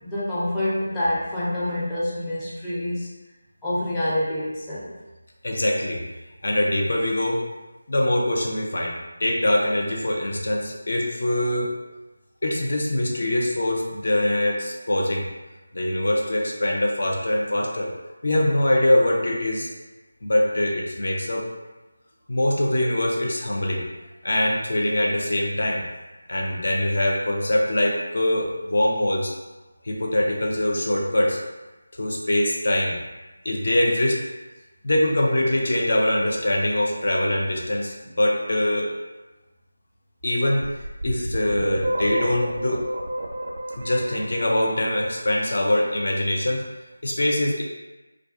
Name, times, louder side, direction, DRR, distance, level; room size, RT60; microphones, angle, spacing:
voice 1, 0.0-3.1 3.6-4.9, left 1 dB, 10° left, -10 dB, 0.5 m, -27 dB
voice 2, 5.4-6.0 6.4-7.4 7.9-11.7 12.4-15.2 15.7-17.9 18.2-19.7 20.2-21.5 22.3-23.9 24.2-25.8 26.3-29.3 29.8-31.4 31.9-33.0 33.4-34.2 34.8-38.9 40.2-40.7 41.0-42.8 43.8-46.6 47.0-47.6, left 1 dB, 55° left, -1 dB, 0.5 m, -23 dB
sound 1, 40.6-45.5, right 1 dB, 55° right, 0.3 m, -30 dB
2.3 x 2.3 x 2.3 m, 1.1 s
figure-of-eight pair, 165°, 0 cm